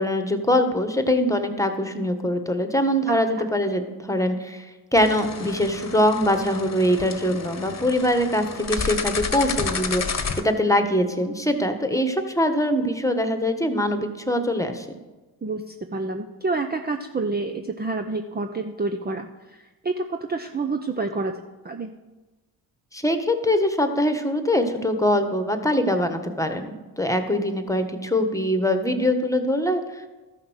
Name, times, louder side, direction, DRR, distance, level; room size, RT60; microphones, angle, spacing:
voice 1, 0.0-14.9 22.9-30.1, left 1 dB, 5° left, 7 dB, 1.5 m, -23 dB
voice 2, 3.1-3.5 15.4-21.3 21.6-21.9, right 3 dB, 20° right, 6 dB, 0.7 m, -28 dB
sound 1, 4.9-10.4, left 5 dB, 35° left, 1.3 m, -31 dB
13.0 x 5.8 x 6.4 m, 1.2 s
hypercardioid pair, 50°, 47 cm